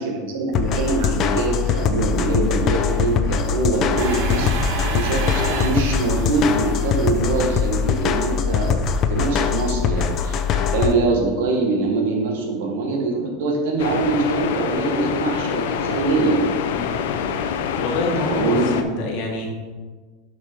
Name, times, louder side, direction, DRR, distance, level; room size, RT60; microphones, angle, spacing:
voice 1, 0.0-8.8 9.1-16.4 18.2-19.0, right 3 dB, 75° right, 1 dB, 1.7 m, -23 dB
sound 1, 0.5-10.9, left 7 dB, 35° left, 0.5 m, -22 dB
sound 2, 4.0-7.9, right 3 dB, 55° right, 1.2 m, -29 dB
sound 3, 13.8-18.8, left 7 dB, 80° left, 0.6 m, -25 dB
voice 2, 16.7-17.1 17.8-19.5, left 2 dB, 55° left, 0 dB, 1.6 m, -27 dB
7.2 x 6.0 x 3.9 m, 1.4 s
supercardioid pair, 155°, 0 cm